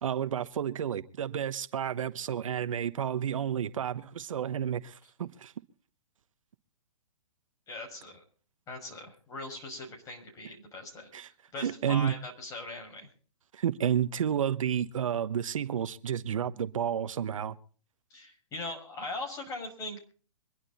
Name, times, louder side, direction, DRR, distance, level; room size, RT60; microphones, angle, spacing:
voice 1, 0.0-5.5 11.1-11.3 11.6-12.1 13.5-17.6, right 9 dB, 70° right, 13 dB, 1.0 m, -31 dB
voice 2, 7.7-8.2 8.7-11.1 11.5-13.1 18.1-20.0, left 2 dB, 20° left, 2 dB, 5.7 m, -40 dB
24.5 x 11.0 x 4.1 m, 0.41 s
hypercardioid pair, 140°, 18 cm